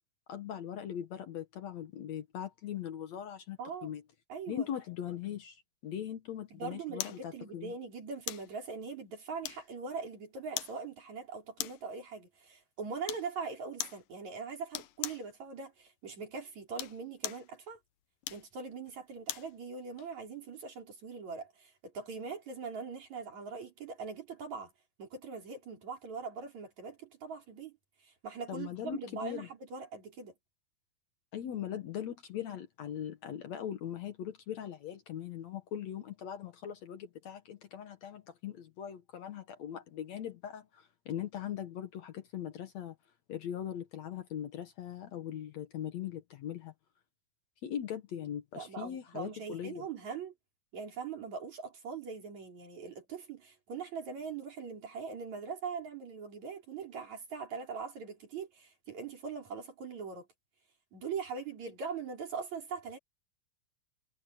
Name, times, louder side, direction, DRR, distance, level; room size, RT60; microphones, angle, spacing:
voice 1, 0.3-4.0 4.5-7.7 28.5-29.5 31.3-43.0 43.3-46.7 47.6-49.9, left 10 dB, 60° left, 2.2 m, -40 dB
voice 2, 3.6-3.9 4.3-4.7 6.5-17.8 18.3-24.7 25.0-27.8 28.0-30.3 48.6-50.3 50.7-60.3 60.9-63.0, right 5 dB, 55° right, 5.9 m, -41 dB
sound 1, 7.0-7.2 8.3-8.5 9.4-9.9 10.6-10.8 11.6-11.9 13.1-13.3 13.8-14.0 14.7-15.3 16.6-17.5 18.2-19.5 20.0-20.1, left 14 dB, 85° left, 2.7 m, -39 dB
omnidirectional pair, 3.8 m